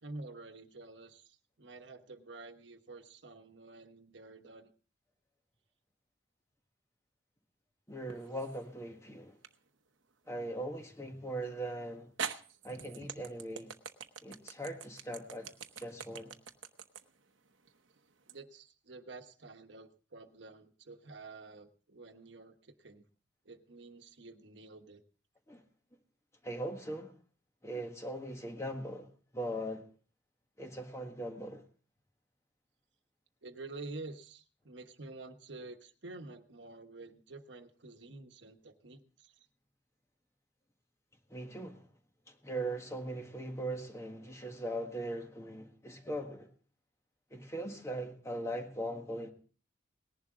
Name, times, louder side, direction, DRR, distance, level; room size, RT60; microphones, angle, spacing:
voice 1, 0.0-4.7 18.3-23.0 23.4-25.0 33.4-39.4, right 3 dB, 70° right, 1.2 m, -49 dB
voice 2, 7.9-9.4 10.3-12.1 12.6-13.7 14.2-15.5 15.8-16.4 25.5-25.6 26.4-27.1 27.6-29.9 30.6-31.6 41.3-41.9 42.3-46.5 47.3-49.3, right 1 dB, 15° left, 1.6 m, -40 dB
sound 1, 8.1-8.7 9.4-9.6 11.4-11.5 12.2-18.4, right 6 dB, 90° right, 1.0 m, -43 dB
19.0 x 11.0 x 3.7 m
head